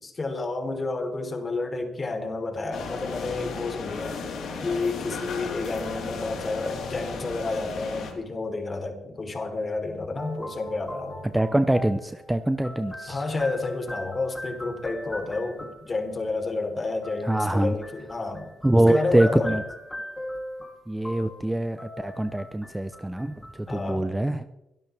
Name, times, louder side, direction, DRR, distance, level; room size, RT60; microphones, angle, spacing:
voice 1, 0.0-4.2 4.6-11.2 13.1-19.6 23.7-24.1, left 3 dB, 30° left, 4 dB, 3.8 m, -30 dB
sound 1, 2.7-8.1, left 4 dB, 70° left, 4.0 m, -35 dB
sound 2, 10.2-16.0 17.0-23.9, left 1 dB, 10° left, 3.2 m, -40 dB
voice 2, 11.3-13.2 17.2-17.8 18.6-19.6 20.9-24.5, right 1 dB, 10° right, 10 dB, 0.7 m, -24 dB
23.5 x 12.0 x 3.5 m, 0.89 s
cardioid pair, 90°, 0 cm